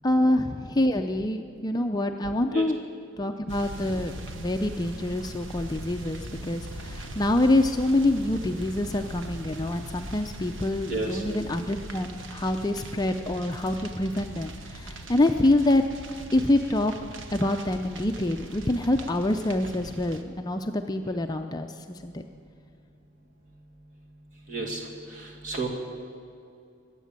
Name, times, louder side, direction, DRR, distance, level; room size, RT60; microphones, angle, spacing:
voice 1, 0.0-2.8 3.2-15.8 16.3-16.9 17.3-22.3, left 1 dB, 20° left, 5 dB, 0.4 m, -26 dB
sound 1, 3.5-20.2, right 1 dB, 70° right, 1.1 m, -40 dB
voice 2, 10.9-11.2 24.5-24.8 25.2-25.7, right 3 dB, 40° right, -1 dB, 2.3 m, -31 dB
22.5 x 8.3 x 7.4 m, 2.5 s
head